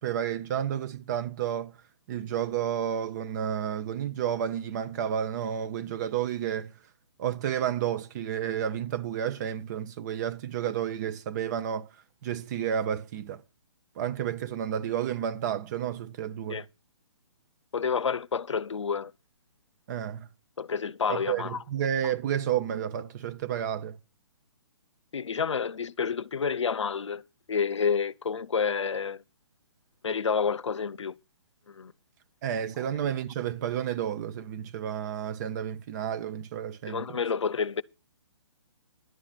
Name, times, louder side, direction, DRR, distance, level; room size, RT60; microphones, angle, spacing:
voice 1, 0.0-1.7 2.1-6.7 7.2-11.9 12.2-13.4 14.0-16.6 19.9-20.3 21.1-24.0 32.4-37.2, right 9 dB, 40° right, 1.0 m, -31 dB
voice 2, 17.7-19.1 20.6-21.6 25.1-27.2 27.5-29.2 30.0-31.1 31.7-31.9 36.9-37.8, left 6 dB, 90° left, 0.6 m, -29 dB
11.5 x 8.7 x 5.8 m
hypercardioid pair, 145°, 15 cm